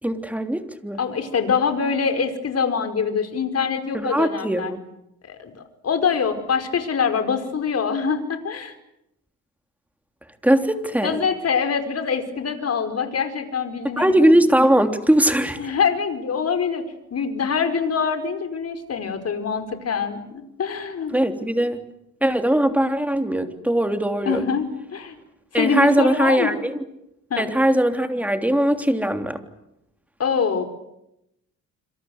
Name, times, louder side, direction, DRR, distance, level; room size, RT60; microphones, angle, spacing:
voice 1, 0.0-1.0 3.9-4.8 10.4-11.2 14.0-15.6 21.1-21.8 22.2-24.4 25.5-26.8 27.4-29.4, right 1 dB, 5° right, 7 dB, 3.2 m, -20 dB
voice 2, 1.0-4.7 5.2-8.7 11.0-14.2 15.6-21.2 24.2-25.1 25.5-26.6 27.3-27.5 30.2-30.6, left 6 dB, 50° left, 8 dB, 5.1 m, -24 dB
27.0 x 27.0 x 8.0 m, 0.83 s
cardioid pair, 100°, 31 cm